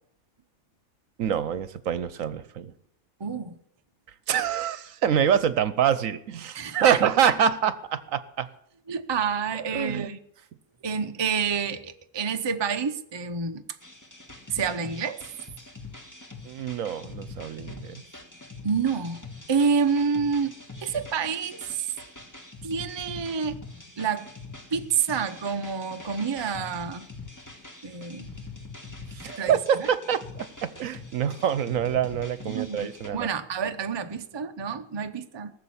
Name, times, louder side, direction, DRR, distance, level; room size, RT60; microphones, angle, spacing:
voice 1, 1.2-2.7 4.3-8.5 9.6-10.2 16.4-18.0 29.1-33.3, right 8 dB, 70° right, 15 dB, 1.1 m, -26 dB
voice 2, 3.2-3.6 6.6-7.0 8.9-10.2 10.8-13.6 14.5-15.2 18.6-19.2 19.5-20.6 20.8-21.9 22.6-23.6 24.0-24.3 24.7-27.1 27.8-28.3 29.4-29.9 32.4-35.5, right 6 dB, 25° right, 7 dB, 0.6 m, -28 dB
sound 1, 13.8-33.1, left 3 dB, 15° left, 1.6 m, -44 dB
19.0 x 6.8 x 8.6 m, 0.72 s
omnidirectional pair, 1.5 m